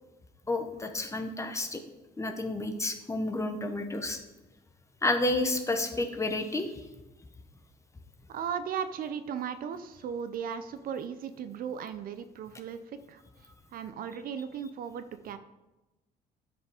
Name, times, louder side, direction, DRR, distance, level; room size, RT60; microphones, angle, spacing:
voice 1, 0.5-1.8 2.2-4.2 5.0-6.7, left 2 dB, 15° left, 6 dB, 1.0 m, -30 dB
voice 2, 8.3-12.8 13.1-13.2 13.7-15.4, right 7 dB, 60° right, 11 dB, 0.6 m, -36 dB
10.0 x 5.0 x 4.9 m, 1.0 s
cardioid pair, 110°, 17 cm